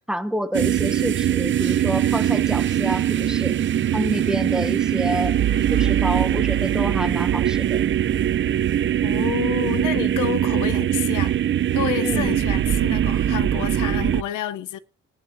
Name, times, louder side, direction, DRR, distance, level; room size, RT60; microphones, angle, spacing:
voice 1, 0.0-3.6 3.9-5.4 5.7-7.8 11.9-12.4, equal, ahead, 1.2 m, -28 dB
sound 1, 0.5-14.2, right 11 dB, 40° right, 0.5 m, -21 dB
voice 2, 9.0-11.4 11.7-14.8, left 12 dB, 85° left, 0.9 m, -29 dB
19.5 x 10.5 x 2.7 m
cardioid pair, 90°, 30 cm